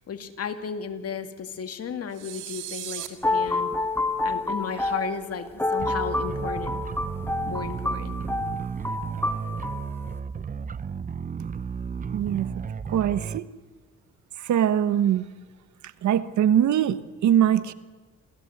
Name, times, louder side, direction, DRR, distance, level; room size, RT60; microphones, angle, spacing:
voice 1, 0.0-3.7 4.2-6.8 7.5-8.2, left 6 dB, 50° left, 2.2 m, -34 dB
sound 1, 2.1-3.1, right 13 dB, 90° right, 1.9 m, -36 dB
sound 2, 3.0-9.9, left 2 dB, 10° left, 1.7 m, -28 dB
sound 3, 5.8-13.4, right 6 dB, 25° right, 0.7 m, -33 dB
voice 2, 12.1-12.5 12.9-13.5 14.5-15.3 16.0-17.7, right 10 dB, 70° right, 1.1 m, -22 dB
27.0 x 16.5 x 8.0 m
cardioid pair, 90°, 30 cm